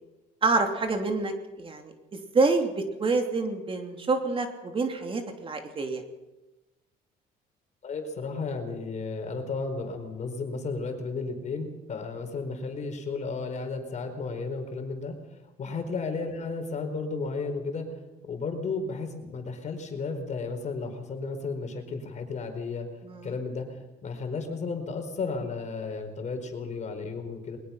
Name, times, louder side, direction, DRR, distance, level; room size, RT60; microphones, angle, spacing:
voice 1, 0.4-1.9 2.3-6.0 15.7-15.8 23.0-23.3, right 3 dB, 30° right, 5 dB, 3.0 m, -27 dB
voice 2, 7.8-15.2 15.6-17.9 18.2-22.9 23.2-23.7 24.0-27.6, left 4 dB, 45° left, 5 dB, 4.6 m, -33 dB
22.0 x 20.5 x 5.9 m, 1.1 s
cardioid pair, 110°, 17 cm